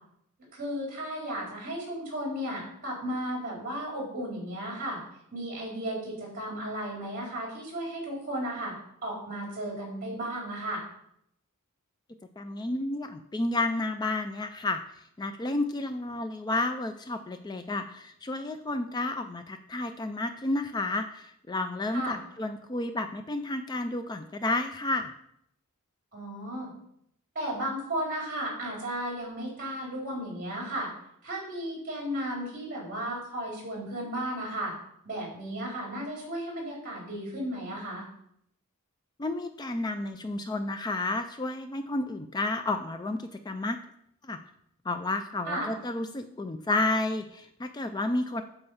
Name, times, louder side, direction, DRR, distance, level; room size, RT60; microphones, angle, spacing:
voice 1, 0.5-5.0 5.3-8.7 9.0-10.8 21.9-22.2 26.1-26.7 27.3-30.9 31.2-34.7 35.0-38.0 45.5-45.7, right 1 dB, 40° right, -3 dB, 4.1 m, -34 dB
voice 2, 12.4-14.8 15.2-25.1 39.2-43.8 44.2-44.4 44.9-48.4, left 2 dB, 20° left, 8 dB, 0.4 m, -31 dB
8.7 x 4.6 x 7.0 m, 0.73 s
head